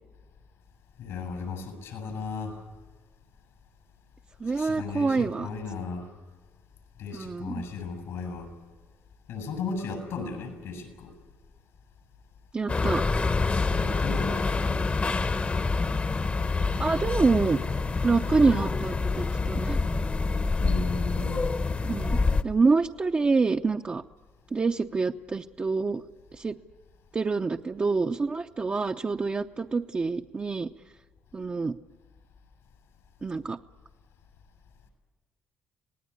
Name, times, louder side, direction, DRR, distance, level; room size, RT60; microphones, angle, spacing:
voice 1, 1.0-2.6 4.5-6.1 7.0-8.5 9.3-11.1 13.7-14.9 20.6-21.5, left 4 dB, 85° left, 9 dB, 6.9 m, -36 dB
voice 2, 4.4-5.5 7.1-7.6 12.5-13.0 16.8-17.6 18.0-19.8 21.8-24.0 24.5-26.0 26.3-26.6 27.1-30.7 31.3-31.8 33.2-33.6, right 4 dB, 30° right, 3 dB, 0.7 m, -26 dB
sound 1, 12.7-22.4, left 3 dB, 30° left, 1.1 m, -27 dB
26.5 x 19.0 x 9.7 m, 1.3 s
cardioid pair, 80°, 4 cm